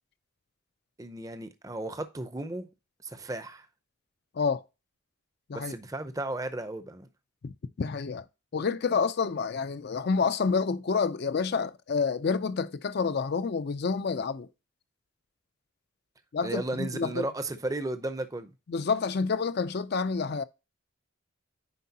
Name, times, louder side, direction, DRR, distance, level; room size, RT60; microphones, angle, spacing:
voice 1, 1.0-2.7 3.0-3.7 5.5-7.1 16.4-18.5, right 2 dB, 15° right, 0.5 m, -34 dB
voice 2, 7.4-8.2 8.5-14.5 16.3-17.3 18.7-20.4, left 5 dB, 50° left, 0.4 m, -28 dB
9.4 x 4.6 x 2.7 m
head